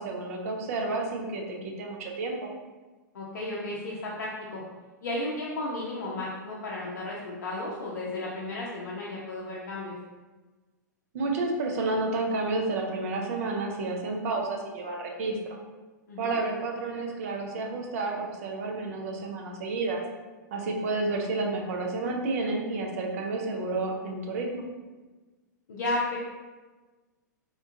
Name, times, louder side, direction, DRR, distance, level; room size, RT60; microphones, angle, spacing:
voice 1, 0.0-2.5 11.1-15.4 16.2-20.0 20.5-24.6, right 3 dB, 45° right, 1 dB, 0.6 m, -30 dB
voice 2, 3.1-4.6 5.0-9.9 16.1-16.4 25.7-26.2, left 2 dB, 60° left, -5 dB, 0.5 m, -33 dB
3.6 x 2.4 x 2.6 m, 1.3 s
figure-of-eight pair, 105°, 10 cm